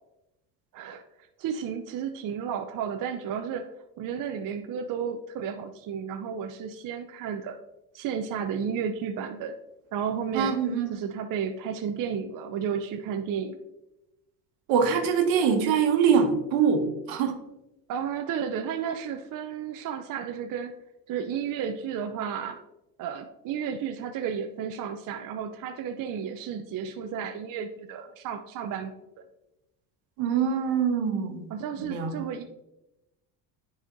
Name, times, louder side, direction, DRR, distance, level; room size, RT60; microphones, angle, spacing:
voice 1, 1.4-7.6 7.9-9.6 9.9-10.6 10.9-13.6 17.9-20.7 21.1-22.6 23.0-28.9 31.5-32.4, right 7 dB, 40° right, 6 dB, 0.6 m, -32 dB
voice 2, 10.3-10.9 14.7-17.4 30.2-31.5 31.8-32.1, right 6 dB, 65° right, 4 dB, 1.3 m, -24 dB
9.8 x 4.2 x 2.6 m, 0.94 s
hypercardioid pair, 65°, 49 cm